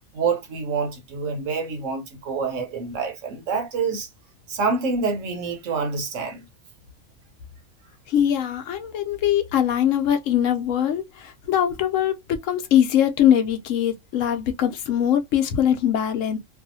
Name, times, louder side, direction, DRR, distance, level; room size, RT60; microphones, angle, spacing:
voice 1, 0.1-4.1 4.5-6.5, right 4 dB, 70° right, 1.1 m, -27 dB
voice 2, 8.1-16.4, left 10 dB, 75° left, 0.9 m, -22 dB
2.6 x 2.4 x 2.6 m
omnidirectional pair, 1.4 m